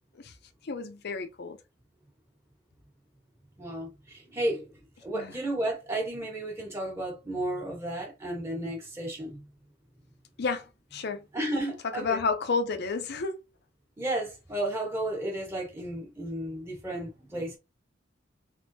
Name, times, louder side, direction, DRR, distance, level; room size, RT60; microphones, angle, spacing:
voice 1, 0.6-1.6 5.1-5.4 10.4-11.3 11.9-13.4, left 4 dB, 55° left, 0.6 m, -31 dB
voice 2, 3.6-4.7 5.0-9.4 11.3-12.2 14.0-17.6, right 1 dB, 15° right, 1.3 m, -33 dB
3.6 x 3.5 x 2.7 m
head